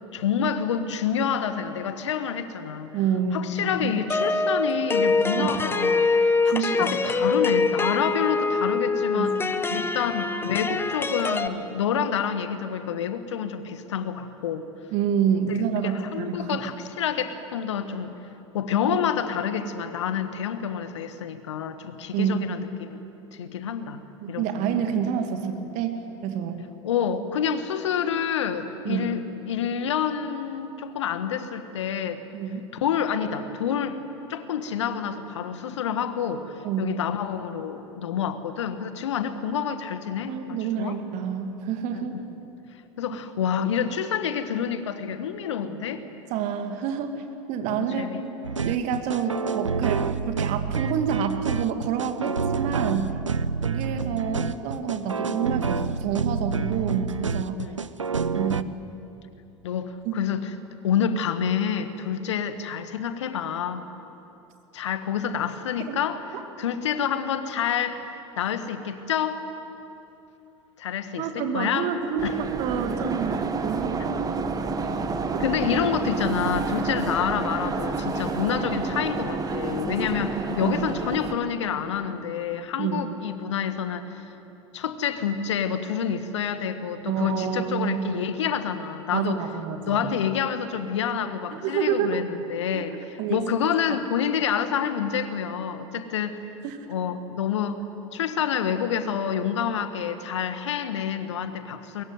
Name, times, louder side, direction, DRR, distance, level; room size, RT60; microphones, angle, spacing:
voice 1, 0.1-2.9 3.3-9.4 9.7-14.6 15.8-18.1 18.5-23.0 23.3-24.0 24.3-24.8 26.8-32.2 32.8-34.0 34.3-41.0 41.9-42.2 43.0-46.0 47.7-48.2 57.5-57.8 59.6-60.5 60.8-63.9 64.7-66.3 66.6-68.1 68.4-69.4 70.8-71.9 72.2-72.4 75.4-84.2 84.7-89.4 89.9-92.9 93.3-96.4 96.9-97.8 98.1-102.0, left 8 dB, 70° left, 10 dB, 1.6 m, -28 dB
voice 2, 2.9-3.9 5.3-5.5 6.5-6.9 9.1-9.9 14.9-16.6 22.1-22.4 24.2-26.6 28.8-29.1 32.3-32.6 36.6-36.9 40.3-42.2 46.3-47.2 47.5-48.1 48.6-53.1 53.6-57.6 58.3-58.8 60.0-60.2 65.9-66.0 71.2-74.7 75.3-75.4 80.6-80.8 82.8-83.1 87.1-88.0 89.1-90.0 91.5-92.2 92.7-92.9 93.2-93.4 96.6-96.9, right 7 dB, 50° right, 6 dB, 2.5 m, -28 dB
sound 1, 4.1-11.5, left 3 dB, 15° left, 1.3 m, -24 dB
sound 2, 48.4-58.6, right 5 dB, 85° right, 0.6 m, -28 dB
sound 3, 72.2-81.3, right 4 dB, 25° right, 1.9 m, -29 dB
22.5 x 22.0 x 9.4 m, 3.0 s
figure-of-eight pair, 75°, 16 cm